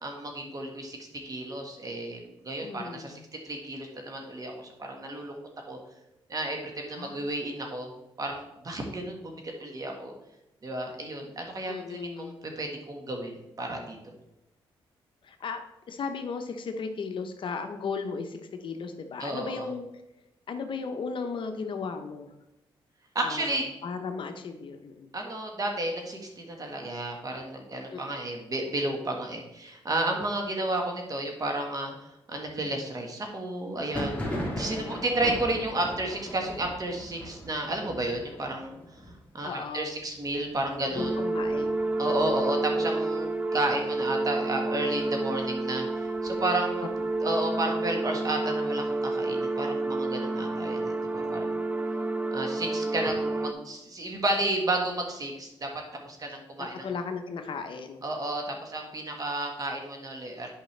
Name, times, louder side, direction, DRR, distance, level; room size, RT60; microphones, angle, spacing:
voice 1, 0.0-1.0 1.2-3.2 3.4-5.4 5.7-5.8 6.3-7.9 8.2-10.1 10.6-14.1 19.2-19.7 23.1-23.6 25.1-39.0 39.3-41.2 42.0-46.9 47.2-51.6 52.3-55.7 56.0-56.9 58.0-60.5, right 2 dB, 40° right, 2 dB, 1.5 m, -32 dB
voice 2, 2.6-3.2 6.9-7.2 11.7-12.3 15.2-15.6 15.9-19.9 20.5-22.3 23.2-25.1 27.9-28.2 34.5-35.1 39.4-40.0 40.9-41.8 42.1-42.4 56.8-58.0, left 5 dB, 60° left, 7 dB, 0.8 m, -36 dB
Thunder, 33.8-43.3 43.5-44.2 44.5-45.5 45.9-47.6, equal, 15° left, 1.9 m, -40 dB
sound 1, 41.0-53.5, right 2 dB, 15° right, 0.6 m, -29 dB
8.8 x 5.1 x 3.3 m, 0.92 s
cardioid pair, 80°, 10 cm